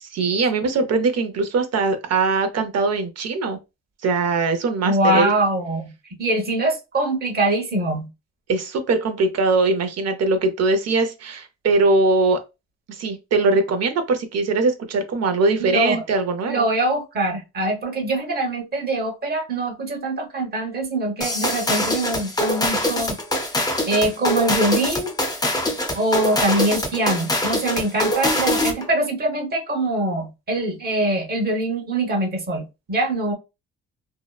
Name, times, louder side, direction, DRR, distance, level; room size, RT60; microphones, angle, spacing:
voice 1, 0.0-3.6 4.0-5.3 8.5-12.4 12.9-16.7, right 3 dB, 55° right, 0.7 m, -21 dB
voice 2, 4.8-5.9 6.2-8.1 15.6-16.0 16.5-23.4 23.8-25.1 25.9-33.3, right 1 dB, 30° right, 1.0 m, -23 dB
sound 1, 21.2-28.9, left 1 dB, 15° left, 0.5 m, -23 dB
2.8 x 2.0 x 2.3 m
cardioid pair, 90°, 30 cm